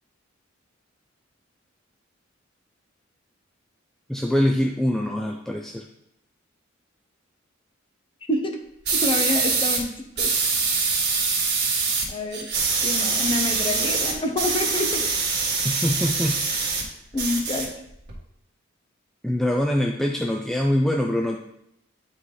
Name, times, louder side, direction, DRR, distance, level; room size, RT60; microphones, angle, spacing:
voice 1, 4.1-5.9 15.6-16.4 19.2-21.4, left 1 dB, ahead, 1 dB, 0.3 m, -23 dB
voice 2, 8.9-10.3 12.1-12.5 12.8-15.1 17.1-17.7, left 2 dB, 25° left, 4 dB, 0.8 m, -27 dB
sound 1, 8.9-9.8 10.2-12.1 12.3-16.8 17.1-18.1, right 4 dB, 55° right, 1.7 m, -24 dB
9.7 x 4.2 x 3.2 m, 0.79 s
head